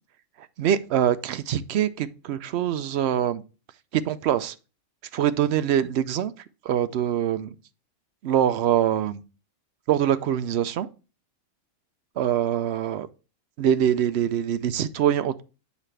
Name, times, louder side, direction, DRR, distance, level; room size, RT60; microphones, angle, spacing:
voice 1, 0.4-3.4 3.9-4.5 5.1-7.5 8.2-9.2 9.9-10.9 12.2-13.1 13.6-15.4, right 10 dB, 65° right, 0.7 m, -24 dB
8.2 x 6.1 x 3.3 m
omnidirectional pair, 1.5 m